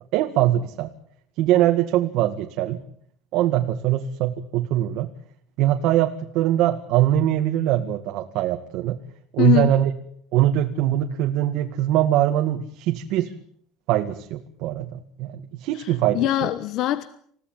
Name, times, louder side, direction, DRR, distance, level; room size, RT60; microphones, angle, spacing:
voice 1, 0.1-0.9 1.4-2.8 3.3-5.1 5.6-9.0 9.3-9.9 10.3-13.3 13.9-16.5, right 13 dB, 55° right, 5 dB, 2.0 m, -22 dB
voice 2, 9.4-9.7 15.7-17.1, left 14 dB, 45° left, 13 dB, 1.2 m, -23 dB
28.5 x 17.0 x 9.0 m, 0.63 s
cardioid pair, 180°, 0 cm